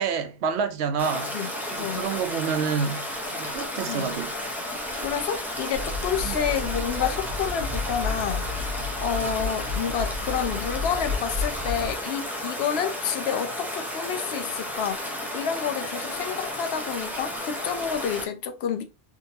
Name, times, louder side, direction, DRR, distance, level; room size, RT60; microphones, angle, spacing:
voice 1, 0.0-1.4 1.7-4.3 6.2-6.4, right 6 dB, 90° right, 0.9 m, -28 dB
Stream, 1.0-18.3, left 1 dB, ahead, 0.6 m, -33 dB
voice 2, 1.8-2.1 3.9-4.1 5.0-8.5 9.0-18.8, left 8 dB, 80° left, 0.8 m, -29 dB
sound 1, 5.7-11.9, left 4 dB, 40° right, 1.1 m, -32 dB
3.7 x 2.7 x 2.6 m
omnidirectional pair, 1.1 m